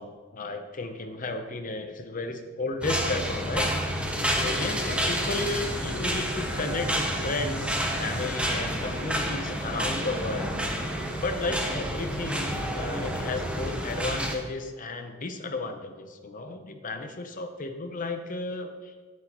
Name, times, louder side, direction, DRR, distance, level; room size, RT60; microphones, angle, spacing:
voice 1, 0.0-3.7 4.3-10.5 11.2-18.9, left 2 dB, 40° left, 6 dB, 0.7 m, -33 dB
sound 1, 2.8-14.3, equal, 5° right, 0.7 m, -29 dB
9.6 x 7.9 x 3.0 m, 1.4 s
head